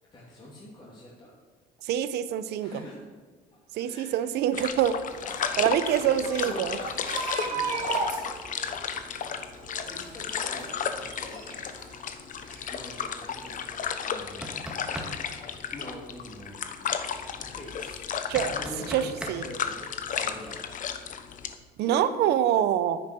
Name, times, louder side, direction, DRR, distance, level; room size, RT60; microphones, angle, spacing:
voice 1, 0.1-1.3 2.6-3.1 3.7-4.3 5.2-5.7 6.0-7.0 7.4-8.4 9.9-12.3 12.7-15.0 15.7-17.1 17.4-18.1 18.4-20.7 21.8-22.2, left 1 dB, 25° left, -5 dB, 2.7 m, -44 dB
voice 2, 1.8-2.7 3.7-5.0 5.6-6.8 18.3-18.5 18.9-19.4 21.8-23.0, right 10 dB, 80° right, 13 dB, 0.8 m, -25 dB
sound 1, 4.5-21.5, left 7 dB, 50° left, 1.0 m, -34 dB
sound 2, 5.1-12.0 12.4-13.2 13.5-13.6, right 4 dB, 50° right, 3.1 m, -36 dB
sound 3, 14.4-15.1 18.3-19.4, right 1 dB, 5° right, 1.9 m, -37 dB
9.6 x 9.5 x 6.1 m, 1.4 s
cardioid pair, 110°, 17 cm